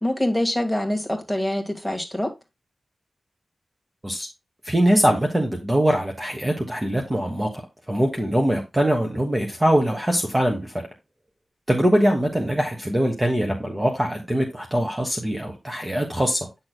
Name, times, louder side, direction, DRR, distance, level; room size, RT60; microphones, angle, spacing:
voice 1, 0.0-2.3, left 1 dB, ahead, 2 dB, 1.7 m, -25 dB
voice 2, 4.6-7.5 7.9-10.8 11.7-16.4, equal, 15° right, 2 dB, 1.2 m, -22 dB
9.5 x 6.3 x 2.2 m, 0.24 s
wide cardioid pair, 110°, 0 cm